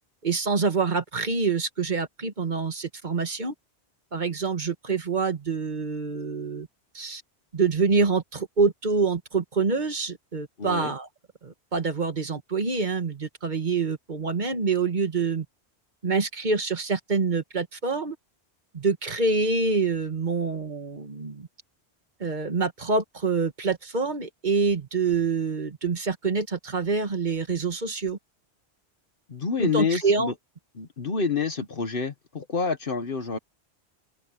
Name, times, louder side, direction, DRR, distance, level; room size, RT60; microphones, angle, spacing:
voice 1, 0.2-3.5 4.1-6.7 6.9-7.2 7.5-11.1 11.4-15.5 16.0-18.2 18.7-21.5 22.2-28.2 29.6-30.3, right 4 dB, 45° right, 1.6 m, -26 dB
voice 2, 10.6-11.0 29.3-30.3 30.8-33.4, left 5 dB, 55° left, 1.3 m, -28 dB
open air
omnidirectional pair, 1.1 m